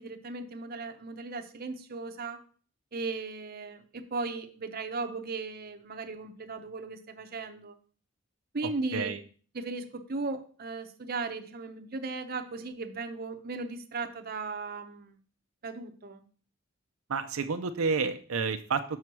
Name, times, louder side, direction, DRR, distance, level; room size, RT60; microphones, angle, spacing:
voice 1, 0.0-2.4 2.9-7.8 8.5-9.1 9.5-15.2 15.6-16.2, right 3 dB, 45° right, 6 dB, 0.8 m, -37 dB
voice 2, 8.6-9.2 17.1-18.8, right 5 dB, 80° right, 7 dB, 0.5 m, -30 dB
6.4 x 4.6 x 6.0 m, 0.42 s
head